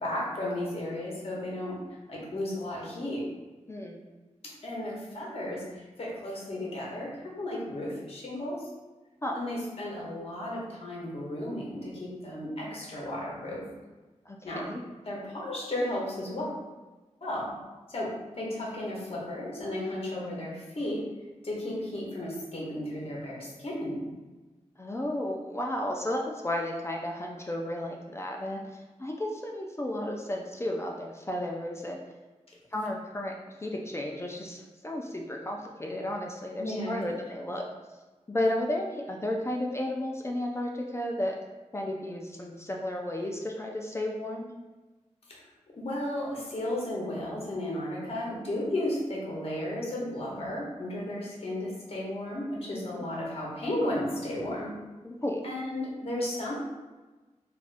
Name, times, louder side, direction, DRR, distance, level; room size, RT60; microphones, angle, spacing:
voice 1, 0.0-1.7 2.1-3.2 4.6-7.1 7.4-8.7 9.3-13.6 14.4-14.6 15.1-16.5 17.2-17.5 17.9-21.0 21.4-24.0 36.6-37.1 45.3-45.4 45.8-54.7 55.4-56.5, left 1 dB, 50° left, -4 dB, 0.9 m, -34 dB
voice 2, 3.7-4.0 9.2-9.4 14.3-14.8 24.8-28.6 29.0-32.0 32.7-33.3 33.6-37.6 38.3-41.4 41.7-44.5 52.7-53.0 55.0-55.4, left 1 dB, 20° left, 0 dB, 0.3 m, -33 dB
3.4 x 2.4 x 2.5 m, 1.2 s
wide cardioid pair, 110°, 12 cm